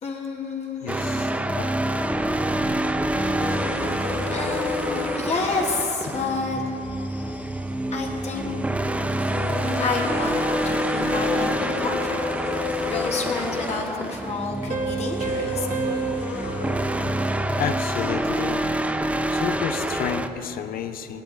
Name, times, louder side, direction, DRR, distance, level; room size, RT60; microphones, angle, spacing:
voice 1, 0.0-1.6 3.1-6.6 7.9-8.6 9.7-12.3 12.6-15.7, left 4 dB, 40° left, -1 dB, 1.7 m, -30 dB
voice 2, 0.8-1.3 1.6-1.7 17.6-18.7 19.3-21.2, left 8 dB, 60° left, 9 dB, 0.7 m, -30 dB
sound 1, 0.9-20.3, right 1 dB, 10° right, 0.5 m, -27 dB
sound 2, 3.4-18.6, left 5 dB, 85° left, 1.8 m, -33 dB
Piano, 14.7-18.0, right 6 dB, 45° right, 1.4 m, -32 dB
17.5 x 11.5 x 4.0 m, 3.0 s
cardioid pair, 110°, 17 cm